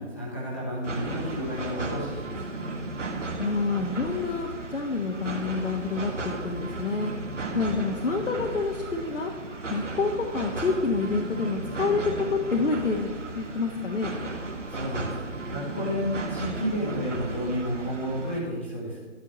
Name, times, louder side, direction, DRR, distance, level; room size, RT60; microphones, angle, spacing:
voice 1, 0.0-2.4 7.3-7.6 14.7-15.2 15.5-19.0, equal, 10° left, -8 dB, 1.1 m, -31 dB
sound 1, 0.8-18.4, right 2 dB, 75° right, 2.3 m, -35 dB
voice 2, 3.4-7.1 7.5-9.3 9.7-14.1, left 4 dB, 75° left, 1 dB, 1.4 m, -28 dB
12.5 x 4.6 x 8.3 m, 1.4 s
hypercardioid pair, 180°, 37 cm